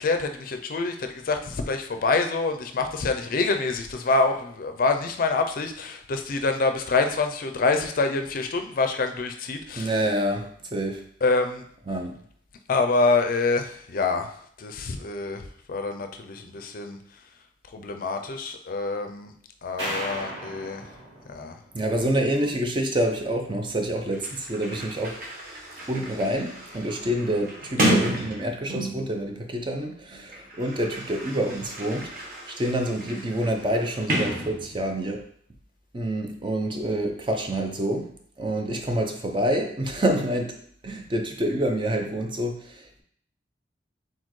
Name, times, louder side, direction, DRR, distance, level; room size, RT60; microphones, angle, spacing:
voice 1, 0.0-9.9 11.2-11.6 12.7-14.3 14.6-15.4 15.7-17.0 17.7-19.3 19.6-20.8 21.3-21.6, left 3 dB, 50° left, 6 dB, 0.4 m, -26 dB
voice 2, 9.8-11.0 11.9-12.2 21.7-25.2 25.9-32.1 32.5-35.2 35.9-38.1 38.4-40.6 40.8-43.0, right 1 dB, 30° right, 4 dB, 0.5 m, -27 dB
sound 1, 19.8-22.1, equal, 75° right, 2.0 m, -35 dB
Sliding door, 23.8-23.9 24.1-29.2 30.1-35.1, right 1 dB, 55° right, 1.1 m, -31 dB
4.3 x 3.9 x 3.1 m, 0.62 s
head